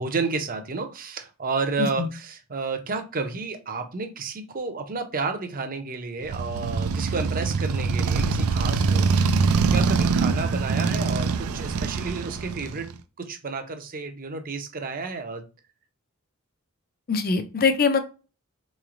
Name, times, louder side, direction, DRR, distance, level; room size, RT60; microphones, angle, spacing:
voice 1, 0.0-9.3 9.7-12.9 13.2-15.4, right 4 dB, 40° right, 7 dB, 0.6 m, -31 dB
Motorcycle, 6.2-12.9, right 4 dB, 85° right, 0.4 m, -24 dB
voice 2, 17.1-18.0, left 4 dB, 45° left, 9 dB, 0.5 m, -22 dB
3.8 x 3.0 x 2.5 m, 0.33 s
head